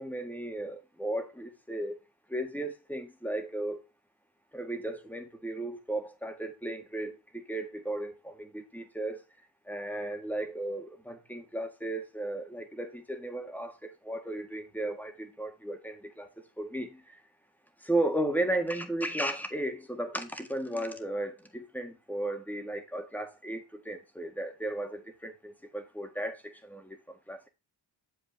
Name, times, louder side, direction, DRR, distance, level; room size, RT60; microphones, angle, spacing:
voice 1, 0.0-2.0 2.3-3.8 4.5-9.2 9.7-16.3 16.6-17.0 17.8-27.0 27.3-27.5, right 1 dB, 5° left, 1.8 m, -35 dB
7.3 x 5.6 x 3.5 m
cardioid pair, 50°, 49 cm